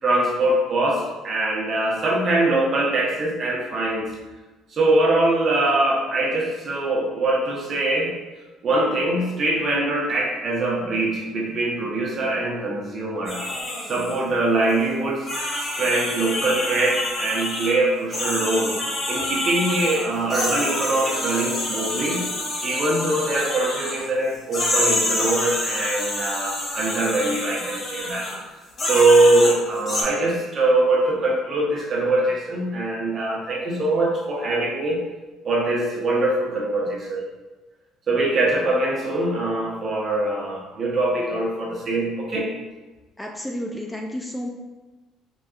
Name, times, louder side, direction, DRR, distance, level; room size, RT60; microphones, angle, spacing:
voice 1, 0.0-4.1 4.7-8.1 8.6-13.4 13.9-15.3 15.6-18.8 19.1-22.3 22.6-28.3 28.8-35.0 35.4-37.2 38.1-42.5, right 2 dB, 45° right, -2 dB, 0.8 m, -22 dB
sound 1, 13.3-14.2 14.7-14.8 15.3-17.7 18.1-24.1 24.5-28.4 28.8-30.0, left 1 dB, 45° left, 0.9 m, -27 dB
voice 2, 43.2-44.5, equal, 10° left, 1 dB, 0.4 m, -31 dB
4.1 x 2.3 x 2.4 m, 1.2 s
supercardioid pair, 80°, 0 cm